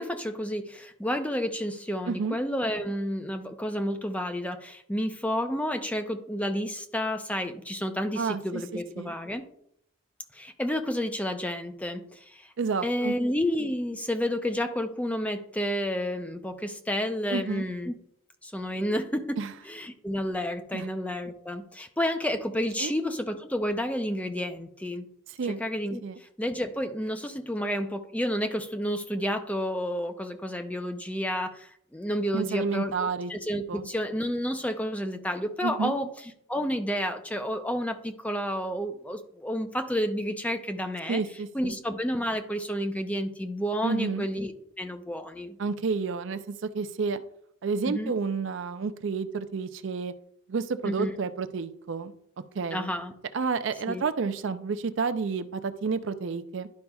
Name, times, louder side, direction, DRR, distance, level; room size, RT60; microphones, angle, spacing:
voice 1, 0.0-9.5 10.3-12.5 12.8-17.9 18.4-19.4 19.7-25.1 25.5-36.1 36.5-41.2 41.5-45.6 47.9-48.1 50.8-51.1 52.7-53.1 53.9-54.0, equal, 5° left, 7 dB, 0.5 m, -30 dB
voice 2, 2.1-2.4 8.2-8.6 9.0-9.1 12.6-13.2 17.3-17.6 19.4-19.5 20.7-20.9 22.8-22.9 25.3-25.6 26.0-26.2 32.3-33.3 33.7-33.9 35.6-35.9 41.1-41.8 43.8-44.3 45.6-47.2 47.6-50.1 50.5-52.1 52.5-52.9 53.3-56.7, right 5 dB, 60° right, 10 dB, 0.4 m, -30 dB
11.5 x 5.3 x 2.3 m, 0.69 s
head